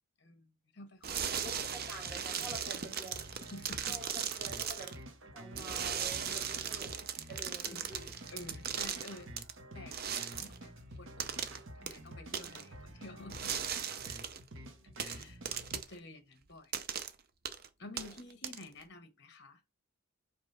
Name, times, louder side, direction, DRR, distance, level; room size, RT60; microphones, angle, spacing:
voice 1, 0.2-2.4 3.5-4.4 6.2-6.9 7.7-7.9 8.3-9.3 9.7-11.5 11.7-13.6 15.0-16.7 17.8-19.6, left 2 dB, 50° left, 1.3 m, -52 dB
sound 1, 1.0-5.0 5.6-9.5 9.9-10.6 11.2-11.6 11.9-12.0 12.3-12.6 13.3-14.4 15.0-15.9 16.7-17.1 17.5-17.7 18.0-18.8, right 8 dB, 45° right, 0.6 m, -38 dB
sound 2, 1.3-15.8, right 1 dB, 70° right, 1.3 m, -50 dB
voice 2, 1.4-3.4 3.8-5.0 5.3-6.9 7.3-8.1 14.5-15.1 18.0-18.1, right 2 dB, 5° left, 3.5 m, -49 dB
5.3 x 4.2 x 4.8 m
head